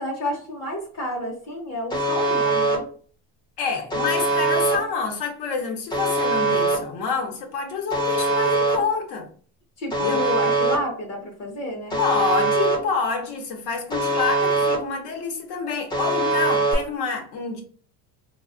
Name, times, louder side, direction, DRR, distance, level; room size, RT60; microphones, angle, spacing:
voice 1, 0.0-2.8 9.8-12.0, left 1 dB, 40° left, 1 dB, 0.8 m, -30 dB
Alarm, 1.9-2.8 3.9-4.8 5.9-6.8 7.9-8.8 9.9-10.8 11.9-12.8 13.9-14.8 15.9-16.7, right 2 dB, 10° left, 0.4 m, -22 dB
voice 2, 3.6-9.3 10.0-10.2 12.0-17.6, left 5 dB, 85° left, 2 dB, 1.0 m, -27 dB
3.4 x 2.2 x 2.4 m, 0.43 s
cardioid pair, 160°, 39 cm